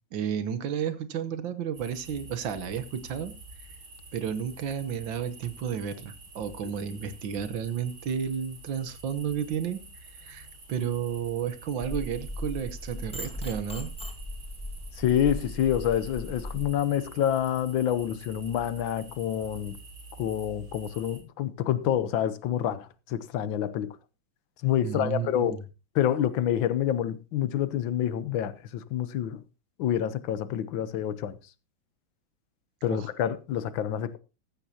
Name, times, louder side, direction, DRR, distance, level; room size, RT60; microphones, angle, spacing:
voice 1, 0.1-3.3 4.1-9.8 10.2-13.9 24.8-25.6 32.9-33.1, right 8 dB, 70° right, 1.8 m, -32 dB
sound 1, 1.7-21.2, right 2 dB, 90° right, 4.4 m, -48 dB
sound 2, 11.8-16.7, left 1 dB, 5° left, 1.4 m, -37 dB
voice 2, 15.0-19.8 20.2-24.0 24.6-25.6 25.9-29.4 29.8-31.4 32.8-34.2, left 10 dB, 75° left, 1.5 m, -27 dB
15.0 x 13.5 x 2.8 m
omnidirectional pair, 2.2 m